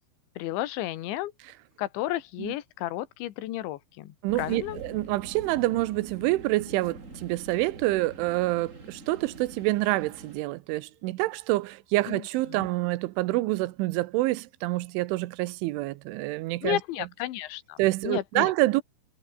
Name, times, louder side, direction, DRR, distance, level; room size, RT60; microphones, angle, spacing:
voice 1, 0.4-1.3 1.8-4.8 12.1-12.2 12.5-12.7 16.6-17.8 18.0-18.5, left 15 dB, 75° left, 3.7 m, -32 dB
voice 2, 4.2-16.8 17.8-18.8, right 19 dB, 90° right, 3.3 m, -27 dB
sound 1, 4.3-10.4, right 2 dB, 15° right, 4.5 m, -45 dB
omnidirectional pair, 5.5 m